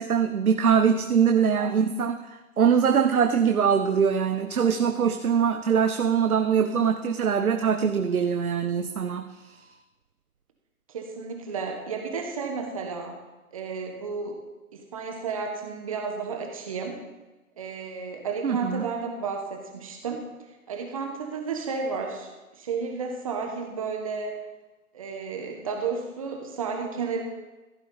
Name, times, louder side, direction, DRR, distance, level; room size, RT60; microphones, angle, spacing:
voice 1, 0.0-9.5 18.4-18.9, right 7 dB, 75° right, 7 dB, 0.9 m, -23 dB
voice 2, 1.3-1.8 10.9-13.1 13.5-14.4 14.7-17.0 17.6-20.2 20.7-24.4 24.9-27.2, right 5 dB, 25° right, 3 dB, 1.2 m, -32 dB
15.0 x 8.4 x 4.0 m, 1.1 s
hypercardioid pair, 160°, 43 cm